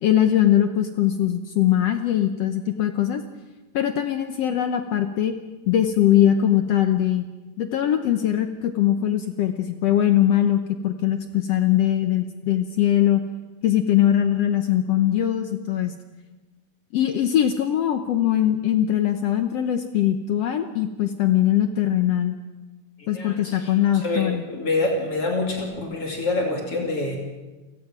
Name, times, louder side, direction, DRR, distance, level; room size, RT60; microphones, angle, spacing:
voice 1, 0.0-3.2 3.7-5.4 5.7-7.3 7.6-13.2 13.6-15.9 16.9-22.4 23.1-24.4, left 11 dB, 70° left, 7 dB, 1.8 m, -21 dB
voice 2, 23.0-27.2, left 2 dB, 50° left, 0 dB, 3.4 m, -27 dB
29.5 x 16.5 x 6.0 m, 1.2 s
omnidirectional pair, 3.4 m